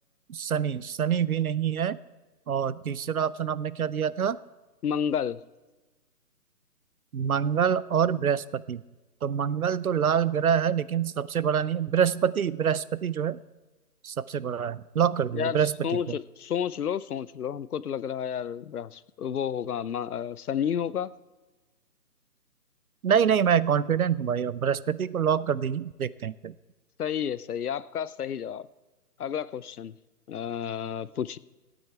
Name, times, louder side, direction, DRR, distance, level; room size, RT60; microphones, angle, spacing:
voice 1, 0.3-2.0 2.5-4.4 7.1-8.8 9.2-13.4 14.0-16.2 23.0-26.5, right 8 dB, 65° right, 19 dB, 0.5 m, -26 dB
voice 2, 4.8-5.4 15.3-15.6 15.8-21.1 27.0-28.7 29.2-29.9 30.3-31.4, left 8 dB, 65° left, 18 dB, 0.6 m, -31 dB
16.0 x 9.1 x 4.6 m, 1.2 s
hypercardioid pair, 180°, 48 cm